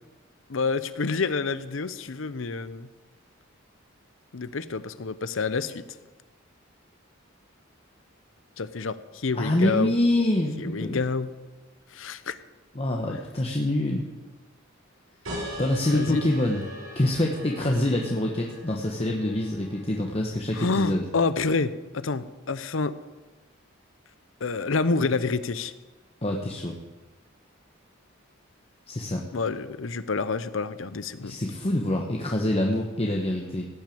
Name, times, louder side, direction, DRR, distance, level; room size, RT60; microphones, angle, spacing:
voice 1, 0.5-2.9 4.3-5.8 8.6-9.9 10.6-11.3 11.9-12.4 15.9-16.2 20.5-22.9 24.4-25.7 29.3-31.4, left 4 dB, 70° left, 14 dB, 0.7 m, -28 dB
voice 2, 9.3-11.0 12.7-14.0 15.6-16.6 16.9-21.0 26.2-26.7 28.9-29.2 31.2-33.7, left 1 dB, 30° left, 0 dB, 1.1 m, -26 dB
sound 1, 15.2-20.4, equal, 85° right, 5.3 m, -41 dB
17.0 x 6.4 x 8.5 m, 1.2 s
head